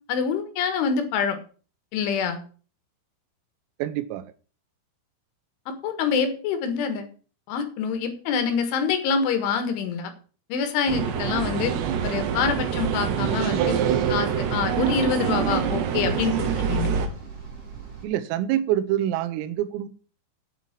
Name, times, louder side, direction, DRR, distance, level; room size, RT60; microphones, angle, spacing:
voice 1, 0.1-1.4 1.9-2.4 5.7-7.1 7.5-10.1 10.5-11.7 12.0-13.8 14.1-17.0, left 6 dB, 70° left, 8 dB, 3.8 m, -26 dB
voice 2, 3.8-4.2 18.0-19.9, right 12 dB, 85° right, 12 dB, 3.5 m, -26 dB
sound 1, 10.9-17.1, right 8 dB, 65° right, 3.0 m, -25 dB
sound 2, 11.4-18.1, right 5 dB, 40° right, 4.6 m, -41 dB
8.9 x 7.4 x 7.4 m, 0.39 s
omnidirectional pair, 5.9 m